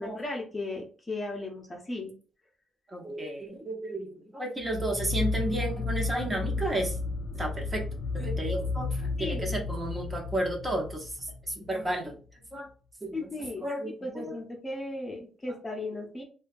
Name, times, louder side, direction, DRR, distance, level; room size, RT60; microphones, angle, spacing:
voice 1, 0.0-2.1 9.2-9.5 13.1-16.2, left 2 dB, 25° left, 1 dB, 0.7 m, -36 dB
voice 2, 2.9-7.0 7.3-7.8 8.1-12.2 12.5-12.7 13.0-13.3 13.6-14.4, right 1 dB, 25° right, 1 dB, 0.8 m, -33 dB
sound 1, 4.6-11.9, left 3 dB, 55° left, 0.4 m, -33 dB
2.7 x 2.2 x 2.5 m, 0.38 s
cardioid pair, 90°, 0 cm